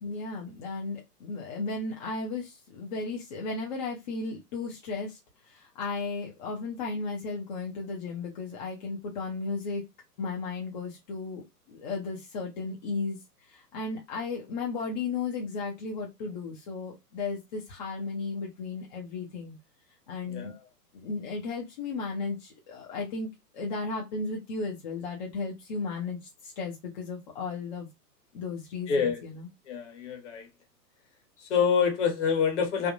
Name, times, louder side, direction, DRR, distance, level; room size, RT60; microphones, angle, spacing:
voice 1, 0.0-5.2 5.4-9.9 10.2-19.6 20.1-20.5 20.9-23.3 23.5-27.9 28.3-29.5, left 4 dB, 30° left, 0.6 m, -35 dB
voice 2, 28.9-29.2 29.7-30.5 31.5-32.9, left 6 dB, 45° left, 1.3 m, -26 dB
3.4 x 2.2 x 2.5 m
figure-of-eight pair, 120°, 49 cm